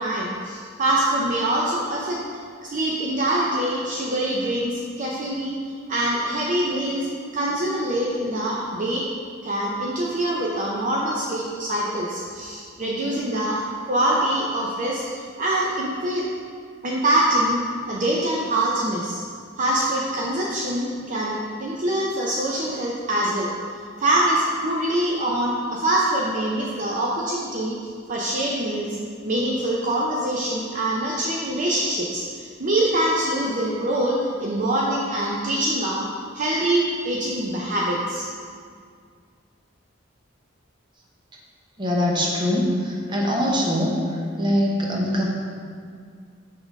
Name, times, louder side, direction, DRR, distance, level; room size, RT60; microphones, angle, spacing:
voice 1, 0.0-2.2 2.6-5.6 5.9-7.1 7.3-9.0 9.4-15.0 15.4-16.3 16.8-17.6 17.9-19.2 19.6-23.5 24.0-27.8 28.1-29.0 29.2-36.1 36.3-38.3, right 1 dB, 40° right, -4 dB, 0.6 m, -24 dB
voice 2, 41.8-44.0 44.4-45.2, equal, 25° right, -2 dB, 0.9 m, -22 dB
6.1 x 3.8 x 5.1 m, 2.1 s
head